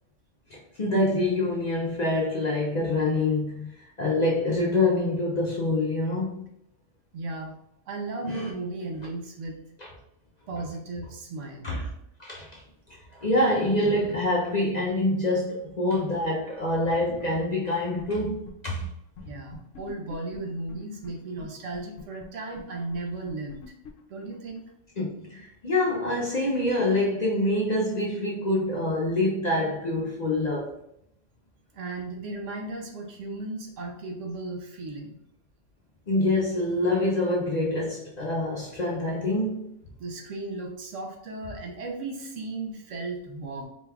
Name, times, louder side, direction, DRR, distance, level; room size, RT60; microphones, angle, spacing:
voice 1, 0.5-3.7 4.0-6.5 8.2-8.5 9.8-9.9 11.6-11.9 12.2-12.6 12.9-18.9 25.0-30.8 36.1-39.6, left 1 dB, 50° left, 0.5 m, -26 dB
voice 2, 7.1-7.5 7.9-9.6 10.5-11.7 19.3-23.6 24.1-24.6 31.7-35.2 40.0-43.6, right 2 dB, 75° right, 1.1 m, -35 dB
sound 1, 18.0-18.5 18.8-18.9 19.2-19.3 19.5-21.1 21.4-21.5 21.7-24.7, left 5 dB, 75° left, 0.9 m, -44 dB
4.2 x 2.3 x 3.3 m
omnidirectional pair, 1.3 m